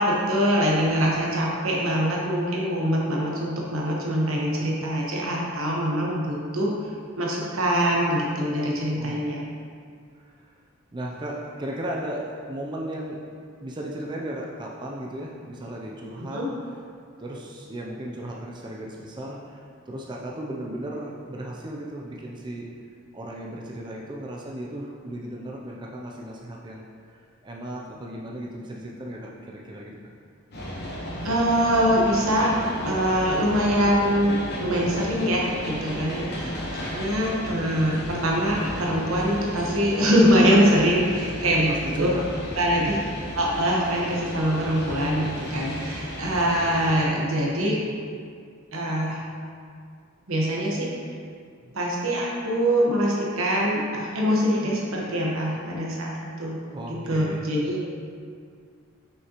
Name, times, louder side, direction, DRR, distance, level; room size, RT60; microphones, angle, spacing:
voice 1, 0.0-6.7 7.2-9.4 16.2-16.5 31.2-32.5 32.8-36.6 36.9-42.1 42.5-43.0 43.4-47.8 48.7-49.2 50.3-50.9 51.7-56.6 56.9-57.8, equal, 80° right, -3 dB, 1.2 m, -23 dB
voice 2, 8.9-9.6 10.2-10.3 10.9-13.3 13.6-16.5 17.2-22.7 23.1-30.0 36.3-36.5 41.7-42.3 42.8-42.9 51.6-51.7 56.7-57.7, right 1 dB, 20° right, -2 dB, 0.4 m, -36 dB
sound 1, 30.5-47.0, equal, 50° left, 1.1 m, -34 dB
6.4 x 5.6 x 2.9 m, 2.2 s
head